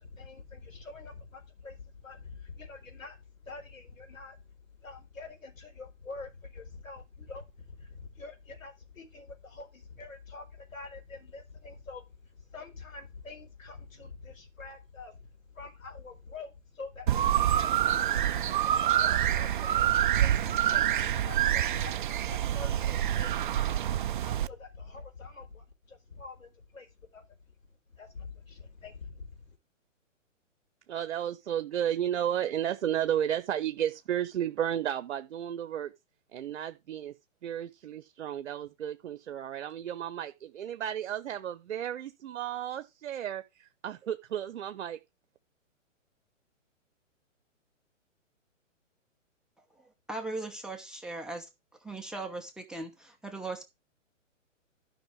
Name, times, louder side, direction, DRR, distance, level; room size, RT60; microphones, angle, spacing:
voice 1, 0.0-27.5 27.9-29.6, left 4 dB, 85° left, 4.4 m, -46 dB
sound 1, 17.1-24.5, right 11 dB, 40° right, 0.4 m, -27 dB
voice 2, 30.9-35.9 36.3-37.1 37.4-45.0, right 10 dB, 60° right, 1.0 m, -33 dB
voice 3, 50.1-51.5 51.8-53.6, right 2 dB, ahead, 1.0 m, -38 dB
12.0 x 5.7 x 4.7 m
hypercardioid pair, 140°, 39 cm